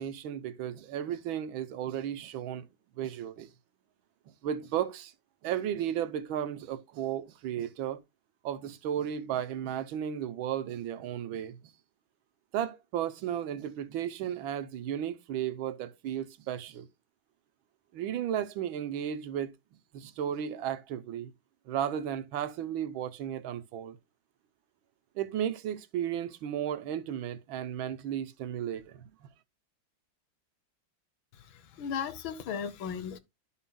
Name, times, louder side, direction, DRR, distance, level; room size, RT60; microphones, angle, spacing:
voice 1, 0.0-2.7 3.0-3.5 4.4-5.1 5.4-8.0 8.4-11.6 12.5-16.9 17.9-19.5 19.9-21.3 21.7-24.0 25.2-29.3, right 10 dB, 80° right, 1.6 m, -34 dB
voice 2, 31.3-33.2, left 7 dB, 75° left, 1.6 m, -36 dB
12.0 x 5.6 x 2.2 m
omnidirectional pair, 2.2 m